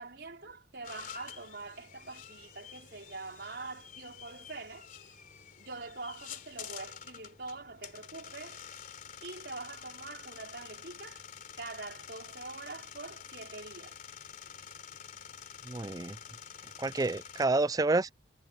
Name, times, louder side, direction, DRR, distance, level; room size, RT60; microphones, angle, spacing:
voice 1, 0.0-4.9 5.6-8.6 9.2-11.2 11.6-14.0, right 3 dB, 65° right, 5.0 m, -44 dB
sound 1, 0.8-17.5, left 8 dB, 50° left, 3.4 m, -48 dB
voice 2, 15.7-16.2 16.8-18.1, right 2 dB, 20° right, 0.4 m, -29 dB
head